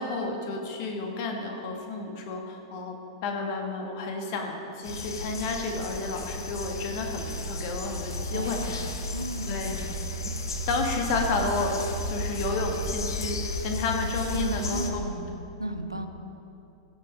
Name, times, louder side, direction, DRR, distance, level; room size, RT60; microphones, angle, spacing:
voice 1, 0.0-3.0 3.2-8.8 9.4-9.8 10.7-11.7 12.0-15.0, left 3 dB, 45° left, 2 dB, 1.7 m, -31 dB
sound 1, 4.8-14.9, left 1 dB, 70° left, 1.0 m, -33 dB
voice 2, 8.3-9.8 14.3-15.3 15.6-16.1, right 1 dB, 90° right, 6 dB, 0.8 m, -34 dB
15.0 x 7.5 x 5.2 m, 2.7 s
figure-of-eight pair, 95°, 2 cm